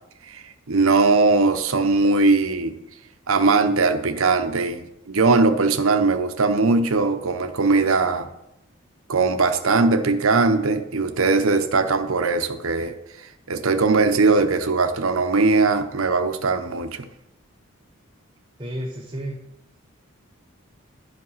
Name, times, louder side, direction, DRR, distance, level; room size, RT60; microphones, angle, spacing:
voice 1, 0.3-2.7 3.3-8.3 9.1-13.0 13.5-17.0, right 3 dB, 85° right, 9 dB, 0.8 m, -20 dB
voice 2, 18.6-19.4, equal, 25° right, 0 dB, 0.8 m, -31 dB
11.0 x 5.3 x 5.6 m, 0.87 s
head